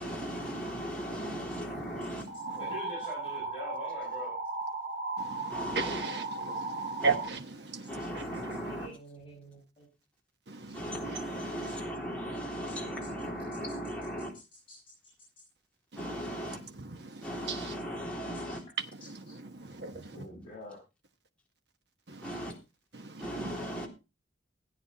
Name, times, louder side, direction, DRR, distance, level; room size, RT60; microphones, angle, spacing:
voice 1, 0.0-2.3 5.5-6.0 7.0-7.2 7.9-8.9 10.7-14.3 16.0-16.6 17.2-18.6 22.2-22.5 23.2-23.9, equal, 5° left, 3.5 m, -37 dB
sound 1, 2.3-7.3, right 3 dB, 35° right, 2.6 m, -36 dB
voice 2, 2.5-4.4 8.6-9.9 14.7-14.8 18.4-18.6 19.9-20.8, left 1 dB, 30° left, 6.8 m, -44 dB
voice 3, 5.2-8.6 10.5-11.2 15.9-16.3 16.6-17.7 19.1-20.2 22.1-22.3 22.9-23.7, right 4 dB, 65° right, 1.2 m, -37 dB
17.0 x 9.1 x 4.0 m
head